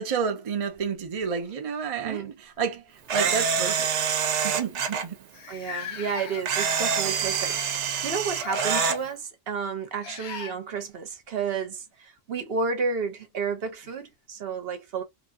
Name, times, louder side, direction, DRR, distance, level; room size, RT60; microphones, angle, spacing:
voice 1, 0.0-3.9 4.4-5.2, right 6 dB, 40° right, 0.6 m, -30 dB
sound 1, 0.7-1.8 2.9-3.1 3.5-3.6 4.4-4.5 4.6-4.7 5.3-6.7 7.2-7.9 8.3-9.0 10.0-10.5 12.7-12.8 13.8-13.9, left 8 dB, 75° left, 1.0 m, -38 dB
Camera, 3.1-5.0 6.5-9.0, right 6 dB, 85° right, 1.0 m, -26 dB
voice 2, 5.5-15.0, right 5 dB, 60° right, 0.9 m, -31 dB
2.9 x 2.2 x 2.4 m
omnidirectional pair, 1.2 m